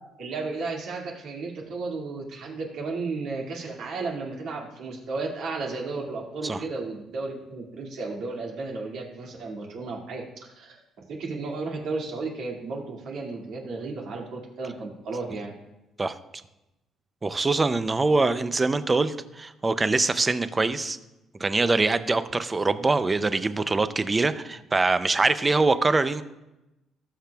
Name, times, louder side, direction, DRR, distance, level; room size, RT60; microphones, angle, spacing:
voice 1, 0.2-15.5, right 3 dB, 65° right, -1 dB, 2.1 m, -34 dB
voice 2, 17.2-21.0 21.4-26.2, right 3 dB, 20° right, 12 dB, 0.4 m, -23 dB
19.0 x 6.7 x 2.3 m, 0.95 s
cardioid pair, 140°, 0 cm